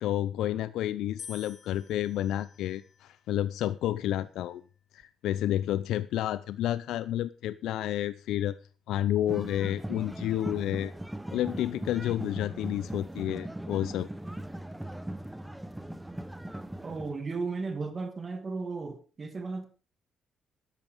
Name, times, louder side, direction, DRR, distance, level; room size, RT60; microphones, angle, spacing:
voice 1, 0.0-4.6 4.9-8.6 8.9-10.9 11.3-14.1, left 12 dB, 85° left, 0.6 m, -30 dB
sound 1, 1.2-3.4 4.2-4.7, left 7 dB, 45° left, 2.2 m, -50 dB
sound 2, 9.3-17.1, right 1 dB, 5° right, 0.8 m, -39 dB
voice 2, 16.8-19.7, right 4 dB, 25° right, 1.9 m, -35 dB
13.5 x 11.0 x 5.1 m
cardioid pair, 150°, 0 cm